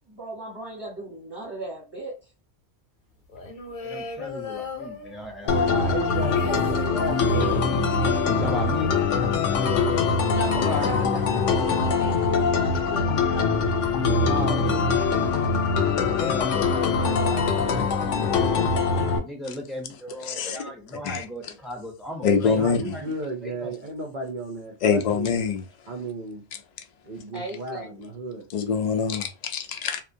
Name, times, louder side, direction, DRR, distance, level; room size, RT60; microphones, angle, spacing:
voice 1, 0.1-2.3 5.4-6.1 10.3-13.7 27.3-27.9, right 2 dB, 25° right, 0.9 m, -37 dB
sound 1, 3.3-5.5 5.8-9.7 10.0-10.1 10.4-10.9, left 3 dB, 50° left, 0.8 m, -37 dB
voice 2, 3.8-5.9 8.3-9.0 10.4-11.4 16.0-23.8, equal, ahead, 0.5 m, -37 dB
voice 3, 5.4-7.9 9.6-10.0 14.2-15.7 22.5-25.3 25.9-26.4 27.1-28.5, right 3 dB, 55° right, 0.5 m, -34 dB
sound 2, 5.5-19.2, left 5 dB, 85° left, 0.9 m, -23 dB
voice 4, 20.3-20.6 21.0-21.2 22.2-22.9 24.8-25.6 26.5-26.6 28.5-30.0, left 6 dB, 65° left, 0.4 m, -24 dB
2.7 x 2.1 x 2.5 m
omnidirectional pair, 1.2 m